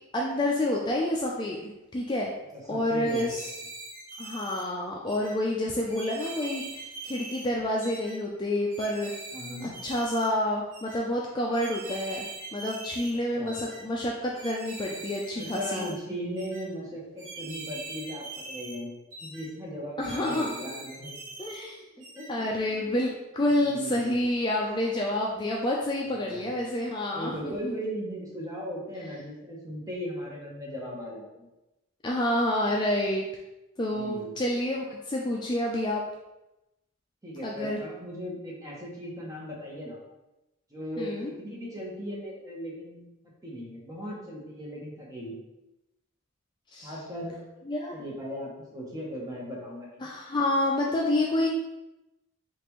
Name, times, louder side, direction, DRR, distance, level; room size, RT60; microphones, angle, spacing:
voice 1, 0.1-2.3 2.7-3.4 4.2-9.1 9.8-12.3 12.5-15.9 20.0-20.5 21.4-21.8 22.3-27.7 32.0-33.3 33.8-36.0 37.4-37.8 41.0-41.3 46.7-46.9 47.7-47.9 50.0-51.5, left 1 dB, 20° left, -2 dB, 0.3 m, -28 dB
voice 2, 2.5-3.3 9.3-9.7 13.3-13.5 15.4-18.9 19.2-21.2 22.1-22.9 23.6-24.2 26.1-26.4 27.1-31.5 34.0-34.3 37.2-40.0 40.7-43.1 43.4-45.4 46.8-47.4 47.9-50.1, equal, 15° right, -4 dB, 0.9 m, -37 dB
sound 1, 3.0-4.6 5.1-5.3 5.9-7.5 7.8-8.2 8.7-10.3 10.7-11.0 11.5-13.1 13.5-13.8 14.3-15.9 16.4-16.6 17.2-18.8 19.1-19.5 20.0-21.6 22.0-22.3, right 3 dB, 80° right, 1.0 m, -42 dB
5.2 x 2.5 x 3.0 m, 0.96 s
head